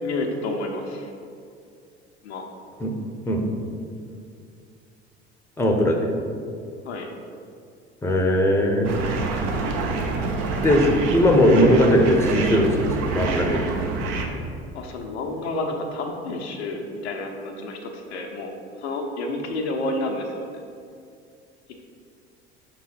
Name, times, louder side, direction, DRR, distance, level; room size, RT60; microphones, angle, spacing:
voice 1, 0.0-1.1 2.2-2.5 6.8-7.1 14.7-20.5, left 2 dB, 70° left, 3 dB, 0.8 m, -30 dB
voice 2, 5.6-6.1 8.0-8.9 10.6-10.9 11.1-13.6, equal, 5° left, 3 dB, 0.8 m, -19 dB
sound 1, 8.8-14.3, right 3 dB, 55° right, 0.9 m, -27 dB
5.5 x 3.8 x 5.8 m, 2.4 s
figure-of-eight pair, 65°, 34 cm